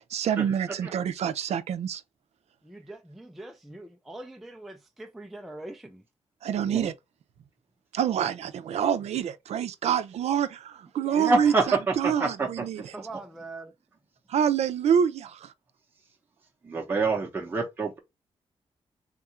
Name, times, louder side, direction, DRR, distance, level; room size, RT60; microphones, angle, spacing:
voice 1, 0.0-2.0 6.4-6.9 7.9-12.8 14.3-15.5, right 8 dB, 80° right, 0.5 m, -27 dB
voice 2, 2.6-6.0 12.9-13.7, right 2 dB, ahead, 0.3 m, -43 dB
voice 3, 11.1-12.9 16.6-18.0, right 3 dB, 20° right, 0.7 m, -27 dB
3.6 x 2.4 x 4.2 m
wide cardioid pair, 180°, 11 cm